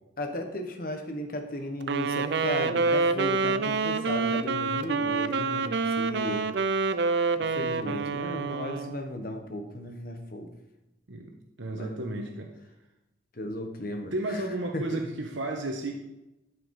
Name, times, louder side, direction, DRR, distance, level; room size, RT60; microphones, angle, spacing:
voice 1, 0.2-6.4 6.8-7.1 7.4-10.5 11.7-12.1 13.3-14.5 14.7-15.0, left 1 dB, 50° left, 5 dB, 1.1 m, -35 dB
Wind instrument woodwind instrument, 1.8-9.1, right 4 dB, 65° right, 0.4 m, -27 dB
voice 2, 11.6-12.5 13.4-13.5 14.1-15.9, right 1 dB, 85° right, 2 dB, 0.9 m, -33 dB
12.0 x 4.9 x 4.7 m, 0.93 s
head